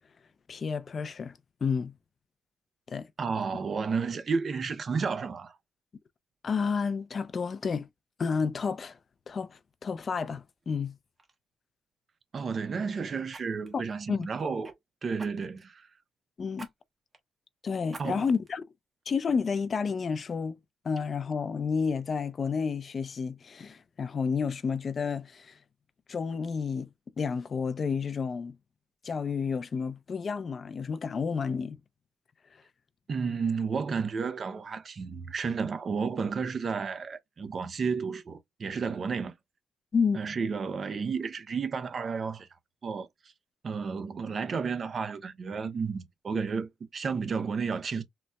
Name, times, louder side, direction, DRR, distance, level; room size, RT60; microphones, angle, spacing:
voice 1, 0.5-1.9 2.9-3.1 6.4-7.9 8.2-9.0 9.3-10.9 13.7-13.8 14.1-14.3 16.4-16.7 17.6-18.6 19.1-20.6 20.8-25.6 26.1-26.9 27.2-28.6 29.0-31.8 39.9-40.2, left 5 dB, 45° left, 0.4 m, -30 dB
voice 2, 3.2-5.6 12.3-14.7 15.0-15.9 18.0-18.3 33.1-39.3 40.1-42.5 42.8-43.1 43.6-48.0, right 5 dB, 45° right, 0.6 m, -32 dB
Fire, 10.6-10.8 11.2-11.4 13.3-14.8 15.2-15.7 16.5-16.7 17.1-17.2 17.9-18.5 19.0-19.1, right 3 dB, 30° right, 1.1 m, -49 dB
3.9 x 2.1 x 2.2 m
cardioid pair, 90°, 0 cm